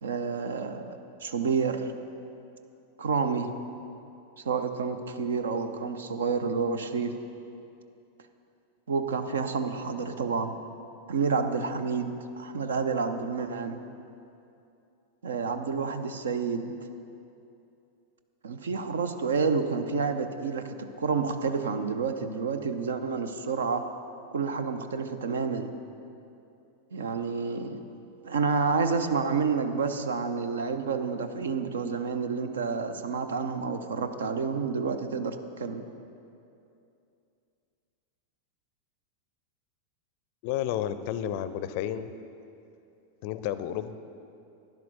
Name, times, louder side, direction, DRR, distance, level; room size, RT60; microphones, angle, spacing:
voice 1, 0.0-1.9 3.0-3.5 4.4-7.2 8.9-10.6 11.1-13.8 15.2-16.7 18.4-23.8 24.3-25.7 26.9-27.8 28.2-35.8, right 5 dB, 65° right, 9 dB, 0.6 m, -29 dB
voice 2, 40.4-42.1 43.2-44.0, left 10 dB, 45° left, 13 dB, 0.4 m, -31 dB
12.0 x 10.5 x 4.1 m, 2.7 s
figure-of-eight pair, 90°, 0 cm